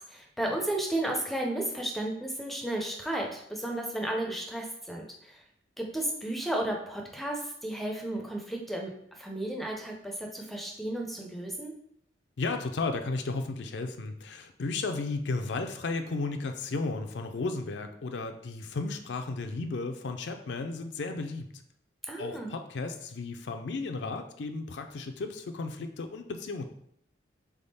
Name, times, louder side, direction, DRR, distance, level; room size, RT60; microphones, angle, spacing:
voice 1, 0.1-5.4 5.8-8.9 9.2-11.7 22.1-22.5, right 1 dB, ahead, 1 dB, 0.5 m, -33 dB
voice 2, 12.4-21.5 22.2-26.6, left 3 dB, 70° left, 6 dB, 0.4 m, -34 dB
3.5 x 3.5 x 4.1 m, 0.71 s
head